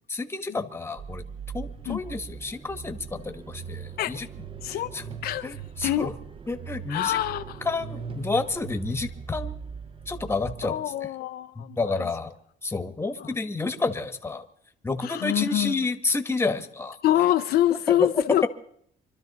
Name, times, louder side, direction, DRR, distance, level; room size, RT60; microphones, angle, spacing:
voice 1, 0.1-1.2 1.5-4.3 4.7-5.0 5.4-6.1 6.5-7.2 7.6-9.5 10.1-10.8 11.6-12.3 12.6-14.4 14.8-17.0 17.9-18.2, left 3 dB, 15° left, 1.2 m, -29 dB
sound 1, 1.0-10.6, right 6 dB, 30° right, 0.8 m, -39 dB
voice 2, 5.2-5.5 5.8-6.1 6.9-7.6 10.6-12.0 13.2-13.3 15.0-15.7 17.0-18.5, left 13 dB, 65° left, 0.5 m, -25 dB
25.0 x 12.5 x 4.0 m
cardioid pair, 110°, 17 cm